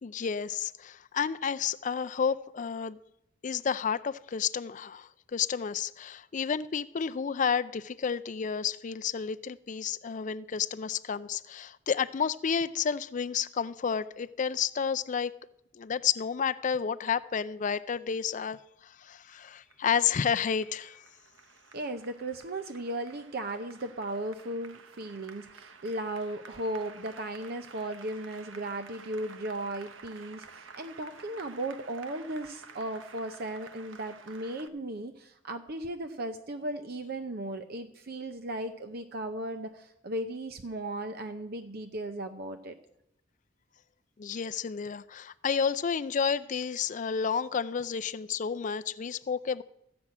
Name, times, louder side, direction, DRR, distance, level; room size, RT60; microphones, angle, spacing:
voice 1, 0.0-3.0 3.4-15.3 15.7-21.0 44.2-49.6, left 6 dB, 40° left, 13 dB, 0.4 m, -31 dB
Applause, 19.4-34.7, right 5 dB, 80° right, 1.0 m, -51 dB
voice 2, 21.7-42.8, right 1 dB, 50° right, 7 dB, 0.7 m, -36 dB
14.5 x 6.1 x 8.6 m, 0.83 s
head